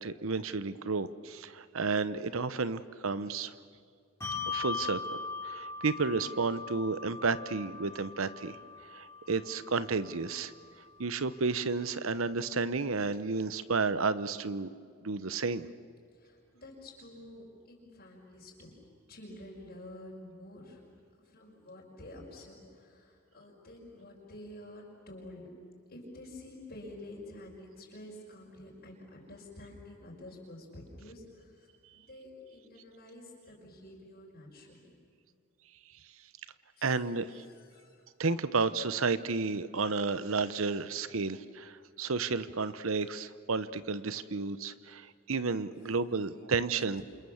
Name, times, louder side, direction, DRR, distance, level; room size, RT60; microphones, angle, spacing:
voice 1, 0.0-3.5 4.5-5.2 5.4-8.6 8.9-10.5 11.0-14.7 15.0-15.7 36.8-37.4 38.2-47.0, right 4 dB, 70° right, 14 dB, 0.9 m, -32 dB
Bell, 4.2-11.1, left 4 dB, 15° left, 5.3 m, -40 dB
voice 2, 16.1-18.7 19.1-20.8 21.3-25.5 25.9-31.7 31.9-34.9 36.8-37.0 37.3-38.0 41.3-41.4 47.0-47.1, left 1 dB, 45° left, -4 dB, 5.6 m, -49 dB
28.5 x 27.5 x 7.3 m, 2.3 s
head